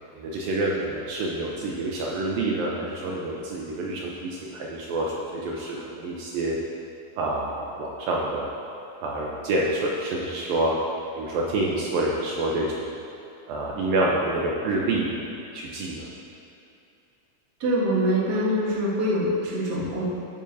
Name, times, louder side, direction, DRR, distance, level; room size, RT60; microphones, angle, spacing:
voice 1, 0.2-6.6 7.2-8.5 9.0-10.8 11.2-12.9 13.5-15.2 15.5-16.1, right 2 dB, 75° right, -3 dB, 2.4 m, -27 dB
voice 2, 17.6-20.0, equal, 35° right, -8 dB, 1.7 m, -24 dB
14.0 x 8.9 x 2.7 m, 2.8 s
omnidirectional pair, 4.5 m